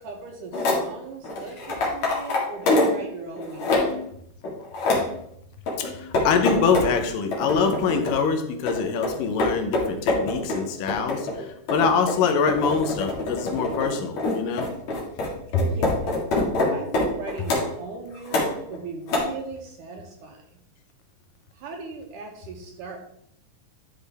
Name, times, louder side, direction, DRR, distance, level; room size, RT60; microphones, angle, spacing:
voice 1, 0.0-3.9 15.6-16.2 16.7-20.4 21.5-23.0, right 4 dB, 75° right, 1 dB, 2.4 m, -38 dB
sound 1, 0.5-0.8 1.2-3.0 3.3-4.0 4.4-5.1 5.7-6.9 7.3-8.2 8.7-17.7 18.2-18.8 19.1-19.2, left 2 dB, 55° left, 3.0 m, -25 dB
voice 2, 5.8-14.7, left 5 dB, 80° left, 7 dB, 2.5 m, -24 dB
11.5 x 5.3 x 3.4 m, 0.73 s
omnidirectional pair, 3.9 m